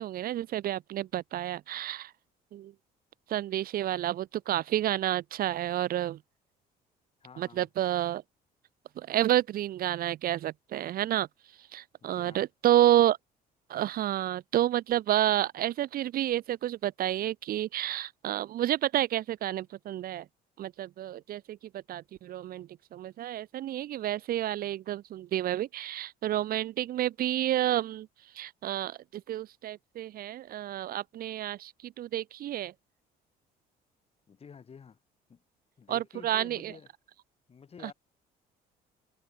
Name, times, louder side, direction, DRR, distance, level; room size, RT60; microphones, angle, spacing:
voice 1, 0.0-2.1 2.5-2.7 3.3-6.2 7.4-8.2 9.0-11.3 11.6-13.2 13.7-20.3 20.6-28.1 28.3-32.7 35.9-36.7 37.8-37.9, right 12 dB, 60° right, 1.0 m, -30 dB
voice 2, 7.2-7.7 12.0-12.5 34.3-35.0 35.3-35.4 35.8-36.9 37.5-37.9, left 6 dB, 35° left, 7.6 m, -50 dB
cardioid pair, 110°, 17 cm